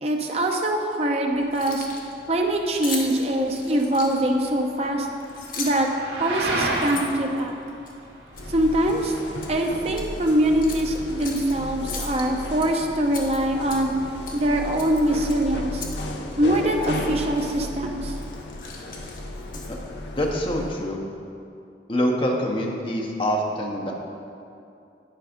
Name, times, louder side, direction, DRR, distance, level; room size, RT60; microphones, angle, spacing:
voice 1, 0.0-1.9 2.3-5.1 5.6-5.9 6.2-7.5 8.5-9.1 9.5-13.9 14.3-15.8 16.4-18.1, right 1 dB, 35° right, 2 dB, 0.7 m, -23 dB
sound 1, 1.3-11.2, right 1 dB, 75° right, 1.6 m, -34 dB
Keys jangling, 1.4-2.1 2.8-4.4 5.2-5.9 6.4-7.9 8.4-8.6 8.9-9.5 9.9-10.1 10.6-11.5 11.9-12.7 13.1-14.0 14.2-14.5 14.8-16.0 16.3-16.4 16.8-17.0 17.6-17.8 18.1-19.9, left 4 dB, 50° left, 1.1 m, -38 dB
sound 2, 8.3-20.9, left 1 dB, 85° left, 0.8 m, -35 dB
voice 2, 20.1-21.0 21.9-23.9, equal, 30° left, 0 dB, 0.9 m, -25 dB
10.5 x 4.7 x 5.2 m, 2.6 s
head